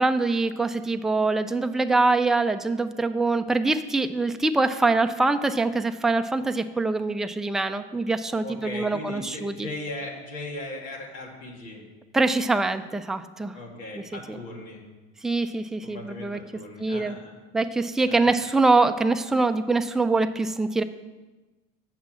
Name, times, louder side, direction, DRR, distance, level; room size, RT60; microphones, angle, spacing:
voice 1, 0.0-9.7 12.1-13.6 14.0-14.4 15.2-16.4 16.8-17.2 17.5-20.8, right 3 dB, ahead, 8 dB, 0.4 m, -24 dB
voice 2, 8.4-11.8 13.5-14.8 15.8-17.4 18.1-18.4, left 2 dB, 85° left, -2 dB, 2.4 m, -38 dB
7.3 x 6.0 x 7.4 m, 1.2 s
supercardioid pair, 90°, 31 cm